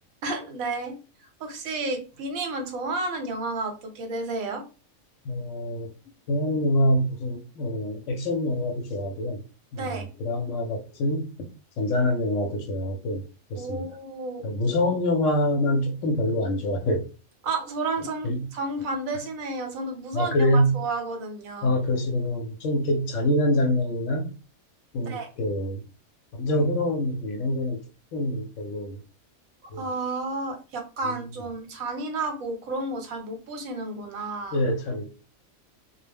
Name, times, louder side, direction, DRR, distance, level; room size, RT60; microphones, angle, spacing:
voice 1, 0.2-1.0 1.4-4.6 9.7-10.0 13.5-14.5 17.4-21.7 25.0-25.3 29.6-34.6, right 3 dB, 75° right, 1.1 m, -31 dB
voice 2, 5.3-5.9 6.3-9.4 9.7-11.5 11.8-13.2 13.5-13.9 14.4-17.1 18.2-18.5 20.1-20.8 21.6-24.3 24.9-25.8 26.3-27.8 28.1-29.0 29.7-29.8 34.5-35.1, left 1 dB, 70° left, 0.9 m, -25 dB
2.3 x 2.0 x 3.3 m
omnidirectional pair, 1.5 m